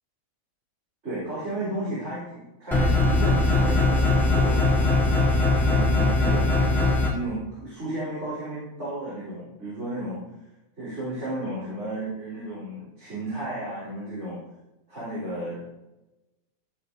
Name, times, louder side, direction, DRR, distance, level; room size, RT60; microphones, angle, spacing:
voice 1, 1.0-4.9 5.7-6.6 7.0-10.2 10.8-14.4 14.9-15.7, right 1 dB, 55° right, -11 dB, 5.1 m, -33 dB
sound 1, 2.7-7.1, left 2 dB, ahead, 3.2 m, -21 dB
16.0 x 7.3 x 4.2 m, 0.97 s
omnidirectional pair, 1.5 m